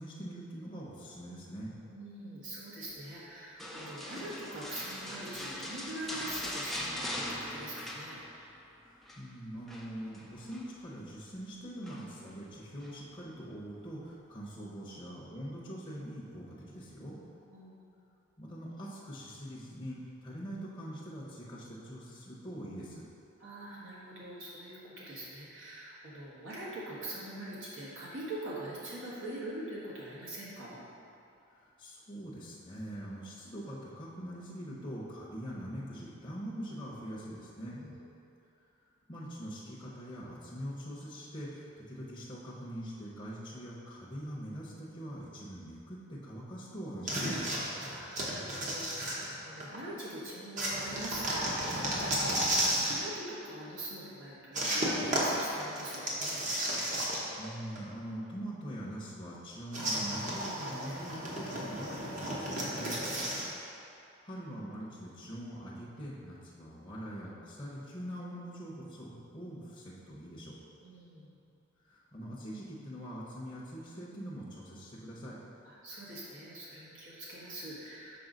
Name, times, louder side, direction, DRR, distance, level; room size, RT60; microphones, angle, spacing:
voice 1, 0.0-1.7 8.8-17.2 18.4-23.0 31.5-37.8 39.1-47.5 57.4-63.0 64.2-70.6 71.8-75.4, equal, 20° left, -7 dB, 0.7 m, -43 dB
voice 2, 1.8-8.2 17.5-17.9 23.4-30.8 37.8-38.0 47.8-56.4 63.0-63.6 70.8-71.3 75.6-78.2, right 1 dB, 70° right, -8 dB, 1.5 m, -44 dB
sound 1, 3.6-8.6 8.9-9.2 9.7-10.7 11.8-12.3 12.8-13.0, left 1 dB, ahead, 0.4 m, -41 dB
sound 2, 47.1-49.8 50.6-53.1 54.5-57.5 57.8-57.9 59.7-63.5, right 1 dB, 40° right, 0.9 m, -33 dB
6.0 x 4.8 x 3.9 m, 2.6 s
head